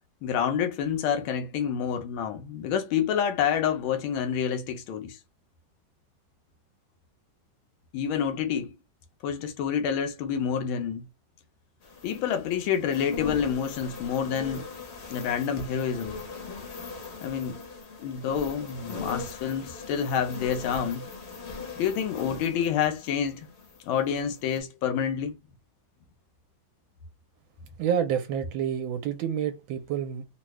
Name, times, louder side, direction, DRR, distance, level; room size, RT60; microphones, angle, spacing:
voice 1, 0.2-5.2 7.9-8.7 9.2-11.0 12.0-14.7 15.1-16.2 17.2-17.6 18.0-21.0 21.8-23.5 23.9-25.3, left 8 dB, 90° left, 1.4 m, -28 dB
sound 1, 11.8-24.0 24.4-24.6, left 4 dB, 55° left, 0.7 m, -40 dB
voice 2, 27.8-30.2, right 8 dB, 80° right, 1.3 m, -28 dB
3.7 x 2.2 x 3.0 m
omnidirectional pair, 2.2 m